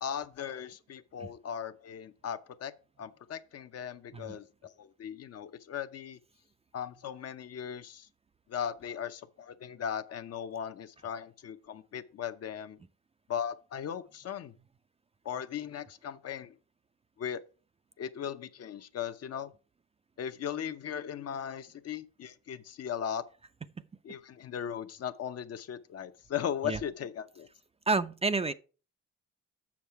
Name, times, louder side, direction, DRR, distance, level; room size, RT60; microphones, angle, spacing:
voice 1, 0.0-2.7 3.0-4.5 4.8-6.2 6.7-8.1 8.5-12.8 13.3-14.5 15.2-16.5 17.2-17.4 18.0-19.5 20.2-23.2 24.0-27.5, left 8 dB, 55° left, 0.7 m, -38 dB
voice 2, 27.9-28.5, right 3 dB, 20° right, 0.4 m, -29 dB
7.3 x 6.3 x 4.6 m
cardioid pair, 90°, 30 cm